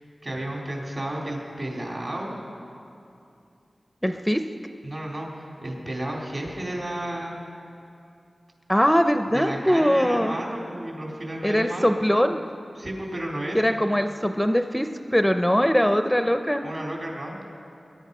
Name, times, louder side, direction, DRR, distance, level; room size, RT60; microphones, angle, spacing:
voice 1, 0.2-2.4 4.8-7.4 9.3-11.9 12.8-13.7 16.6-17.4, right 1 dB, 50° right, -2 dB, 3.8 m, -32 dB
voice 2, 4.0-4.4 8.7-10.4 11.4-12.4 13.5-16.6, equal, 5° left, 7 dB, 0.5 m, -21 dB
21.0 x 11.0 x 5.4 m, 2.7 s
wide cardioid pair, 70°, 0 cm